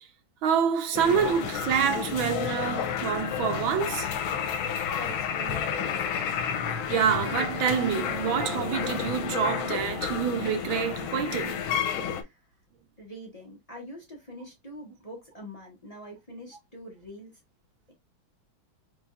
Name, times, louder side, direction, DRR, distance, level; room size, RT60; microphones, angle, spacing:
voice 1, 0.4-4.1 6.9-11.7, right 7 dB, 80° right, 1.6 m, -27 dB
sound 1, 0.9-12.2, left 8 dB, 90° left, 1.5 m, -31 dB
voice 2, 4.7-6.2 12.2-12.4 13.0-17.3, equal, 20° left, 1.2 m, -44 dB
4.6 x 3.5 x 2.5 m
omnidirectional pair, 2.2 m